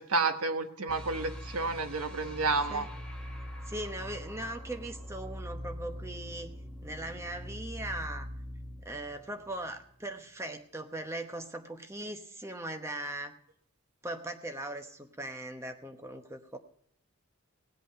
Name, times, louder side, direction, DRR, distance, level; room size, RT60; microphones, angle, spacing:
voice 1, 0.0-2.9, right 3 dB, 80° right, 7 dB, 1.3 m, -30 dB
sound 1, 0.9-10.0, equal, 5° left, 1.4 m, -43 dB
voice 2, 3.7-6.5 6.8-8.3 8.8-13.3 14.0-16.6, right 1 dB, 10° right, 5 dB, 1.0 m, -39 dB
18.0 x 8.2 x 5.6 m, 0.69 s
head